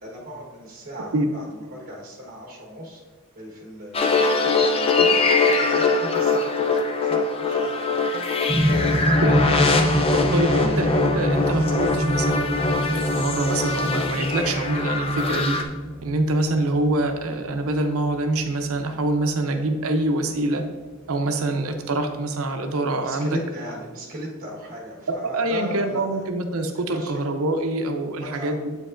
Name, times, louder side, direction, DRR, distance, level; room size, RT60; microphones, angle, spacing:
voice 1, 0.0-3.0 3.3-5.1 5.4-8.2 8.6-10.8 23.0-26.2 26.8-27.2 28.2-28.5, equal, 40° right, -2 dB, 1.2 m, -37 dB
sound 1, 3.9-15.6, left 4 dB, 25° left, 0.4 m, -22 dB
sound 2, 8.5-20.6 21.6-21.7, right 1 dB, ahead, 0.8 m, -26 dB
voice 2, 10.3-15.6 16.0-20.6 21.1-23.4 25.2-28.8, right 2 dB, 75° right, 6 dB, 0.6 m, -25 dB
7.8 x 5.2 x 2.5 m, 1.3 s
head